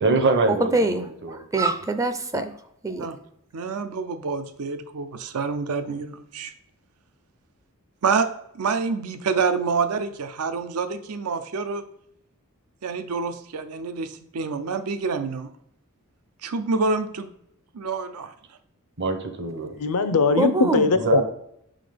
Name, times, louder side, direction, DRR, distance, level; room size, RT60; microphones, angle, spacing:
voice 1, 0.0-1.4 19.0-19.7 20.9-21.2, right 3 dB, 55° right, 7 dB, 0.9 m, -24 dB
voice 2, 0.7-1.0 1.3-2.5 2.8-3.1 20.4-20.9, right 2 dB, 15° right, 9 dB, 0.4 m, -24 dB
voice 3, 3.5-6.5 8.0-8.3 8.5-11.8 12.8-15.5 16.4-17.3 17.7-18.3, right 4 dB, 85° right, 10 dB, 0.5 m, -27 dB
voice 4, 19.8-21.2, left 4 dB, 85° left, 10 dB, 0.6 m, -20 dB
5.9 x 3.7 x 5.0 m, 0.74 s
head